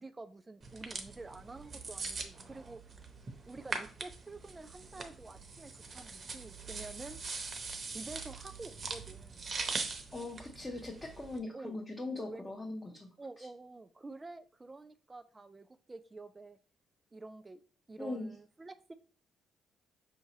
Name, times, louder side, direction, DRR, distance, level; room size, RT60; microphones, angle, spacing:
voice 1, 0.0-2.8 3.5-7.2 7.8-9.5 11.5-11.8 12.1-12.5 13.2-16.6 17.1-17.6 17.9-18.9, right 3 dB, 25° right, 10 dB, 0.3 m, -49 dB
sound 1, 0.6-11.4, right 4 dB, 40° right, 0.7 m, -42 dB
voice 2, 10.1-13.1 13.4-13.5 18.0-18.3, left 2 dB, 20° left, 1 dB, 0.7 m, -40 dB
5.6 x 2.7 x 2.9 m, 0.40 s
cardioid pair, 90°, 0 cm